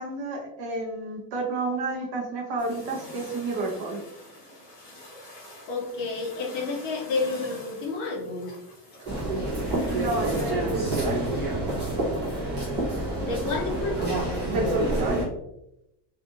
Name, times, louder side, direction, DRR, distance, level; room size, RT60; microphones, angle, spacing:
voice 1, 0.0-4.0 9.9-11.2 14.4-15.2, right 2 dB, 55° right, 0 dB, 0.8 m, -30 dB
sound 1, 2.6-10.5, left 1 dB, 25° left, 1.0 m, -45 dB
voice 2, 5.7-8.5 13.2-14.1, left 3 dB, 40° left, 0 dB, 0.5 m, -30 dB
sound 2, 9.1-15.3, right 1 dB, 20° right, 0.8 m, -28 dB
2.6 x 2.6 x 2.4 m, 0.86 s
cardioid pair, 180°, 47 cm